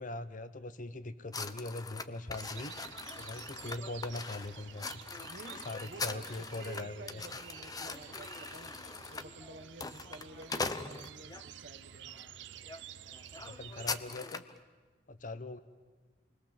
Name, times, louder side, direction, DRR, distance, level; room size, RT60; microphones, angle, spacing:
voice 1, 0.0-2.7 3.2-4.9 5.6-7.2 13.4-14.4 15.1-15.6, left 2 dB, 45° left, 12 dB, 1.1 m, -41 dB
sound 1, 1.3-11.5 12.1-12.3 12.6-12.8 13.1-14.6, left 4 dB, 20° left, 0.8 m, -41 dB
sound 2, 2.3-14.0, right 9 dB, 85° right, 0.7 m, -51 dB
voice 2, 5.3-8.7 9.1-12.3, right 2 dB, 55° right, 9 dB, 1.5 m, -51 dB
29.0 x 21.0 x 7.5 m, 1.4 s
head